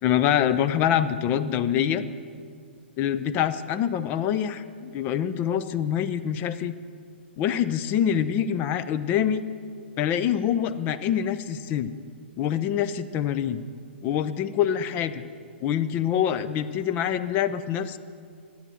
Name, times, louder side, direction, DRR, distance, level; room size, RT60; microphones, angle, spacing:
voice 1, 0.0-2.0 3.0-6.7 7.4-9.4 10.0-11.9 12.4-13.6 14.0-15.2 15.6-18.0, left 9 dB, 30° left, 12 dB, 0.5 m, -25 dB
11.5 x 8.6 x 7.7 m, 2.2 s
figure-of-eight pair, 115°, 6 cm